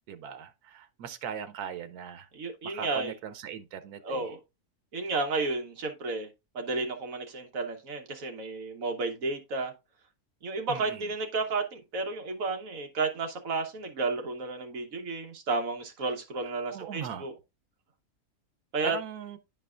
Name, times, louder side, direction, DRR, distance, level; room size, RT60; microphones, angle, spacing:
voice 1, 0.1-2.3 2.6-4.3 10.7-11.1 16.7-17.3 18.8-19.4, right 8 dB, 90° right, 1.2 m, -39 dB
voice 2, 2.3-3.1 4.0-4.4 4.9-6.3 6.5-9.7 10.4-17.3 18.7-19.0, right 3 dB, 65° right, 1.4 m, -32 dB
10.5 x 4.6 x 2.4 m
omnidirectional pair, 1.6 m